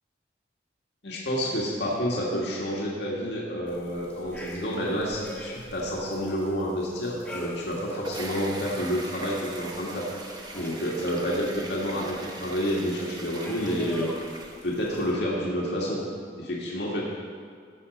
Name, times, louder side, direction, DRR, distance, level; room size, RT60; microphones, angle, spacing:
voice 1, 1.0-14.1 14.6-16.0 16.4-17.1, equal, 70° left, -4 dB, 1.9 m, -29 dB
sound 1, 3.7-15.1, equal, 5° left, 1.5 m, -45 dB
sound 2, 7.8-15.1, right 2 dB, 20° right, 1.1 m, -40 dB
14.5 x 7.3 x 5.3 m, 2.1 s
head